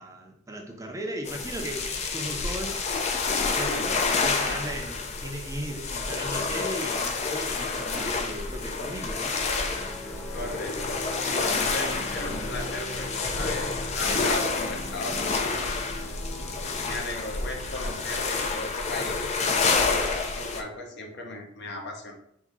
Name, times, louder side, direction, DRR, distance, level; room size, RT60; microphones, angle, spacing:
voice 1, 0.0-2.8 3.4-9.4, equal, 15° right, 2 dB, 0.5 m, -37 dB
sound 1, 1.3-20.6, left 4 dB, 35° left, 0.5 m, -29 dB
voice 2, 3.6-4.6 10.3-15.7 16.8-20.0 20.3-22.1, left 2 dB, 55° left, 2 dB, 0.9 m, -36 dB
sound 2, 9.6-17.0, equal, 10° left, 0.8 m, -40 dB
3.7 x 2.7 x 4.7 m, 0.70 s
head